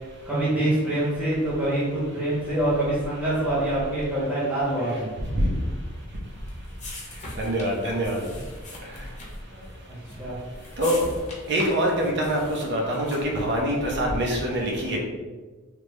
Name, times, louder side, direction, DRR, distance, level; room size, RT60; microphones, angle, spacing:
voice 1, 0.3-5.1 9.9-10.4, right 1 dB, 10° right, -9 dB, 0.9 m, -25 dB
sound 1, 6.0-13.5, left 1 dB, 35° left, 0.7 m, -42 dB
voice 2, 7.4-8.2 10.8-11.0 11.5-15.0, right 1 dB, 55° right, -1 dB, 0.7 m, -24 dB
3.3 x 2.1 x 3.2 m, 1.3 s
head